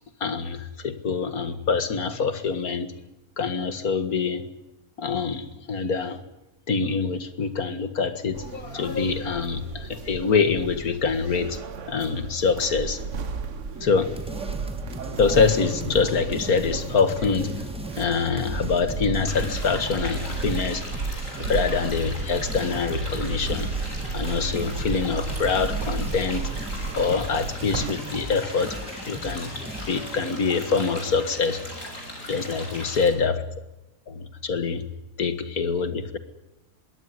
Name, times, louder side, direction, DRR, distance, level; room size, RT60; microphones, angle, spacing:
voice 1, 0.2-2.9 3.4-4.5 5.0-6.2 6.7-11.6 11.9-13.0 13.8-14.1 15.2-17.7 18.0-20.8 21.4-23.7 24.1-26.4 26.9-28.8 29.1-29.5 29.9-31.6 32.3-33.4 34.1-34.9 35.2-36.2, left 5 dB, 85° left, 12 dB, 2.3 m, -25 dB
sound 1, 8.3-27.9, right 5 dB, 60° right, 1.4 m, -34 dB
sound 2, 13.8-30.3, equal, 5° right, 2.5 m, -38 dB
sound 3, 19.3-33.1, left 1 dB, 60° left, 6.9 m, -38 dB
22.0 x 17.0 x 9.5 m, 1.0 s
omnidirectional pair, 1.5 m